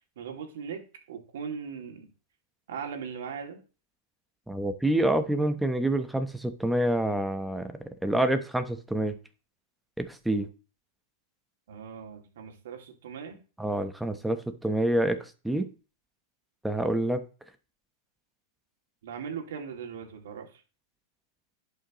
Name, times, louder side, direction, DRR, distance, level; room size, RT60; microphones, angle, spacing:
voice 1, 0.2-0.8 1.1-2.1 2.7-3.6 11.7-13.4 19.0-20.6, right 6 dB, 75° right, 3 dB, 2.4 m, -39 dB
voice 2, 4.5-7.7 8.0-9.2 10.0-10.5 13.6-15.7 16.6-17.2, right 1 dB, 5° right, 9 dB, 1.0 m, -27 dB
11.0 x 5.6 x 3.1 m, 0.35 s
hypercardioid pair, 120°, 0 cm